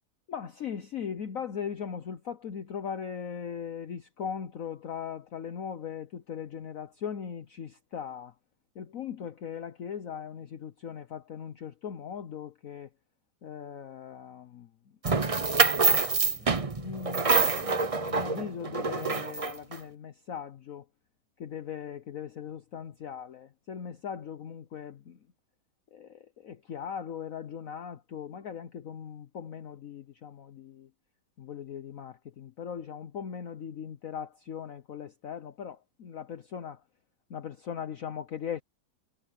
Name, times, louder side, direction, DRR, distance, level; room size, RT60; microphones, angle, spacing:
voice 1, 0.3-8.3 8.7-12.9 13.4-14.7 16.0-16.5 16.8-20.9 21.4-25.2 25.9-30.9 31.4-36.8 37.3-38.6, left 7 dB, 55° left, 1.2 m, -39 dB
sound 1, 15.0-19.7, right 4 dB, 30° right, 0.7 m, -26 dB
omnidirectional pair, 1.9 m